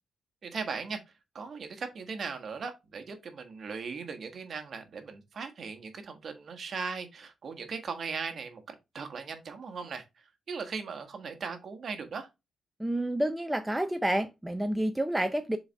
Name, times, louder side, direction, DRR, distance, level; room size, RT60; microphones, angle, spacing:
voice 1, 0.4-1.0 1.3-12.3, right 5 dB, 45° right, 1.4 m, -38 dB
voice 2, 12.8-15.6, right 1 dB, 5° right, 0.5 m, -29 dB
6.9 x 4.1 x 3.3 m
wide cardioid pair, 150°, 0 cm